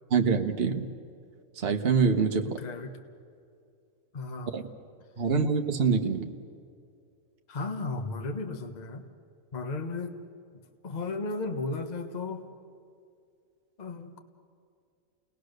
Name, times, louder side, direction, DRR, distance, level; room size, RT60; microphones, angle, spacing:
voice 1, 0.1-0.9 1.6-2.6 4.5-4.7 5.2-6.3, right 5 dB, 45° right, 4 dB, 1.3 m, -25 dB
voice 2, 2.4-2.9 4.1-4.6 7.5-9.1 9.5-10.2 10.8-12.5 13.8-14.2, left 3 dB, 30° left, 6 dB, 1.3 m, -35 dB
29.0 x 19.5 x 6.6 m, 2.4 s
omnidirectional pair, 1.5 m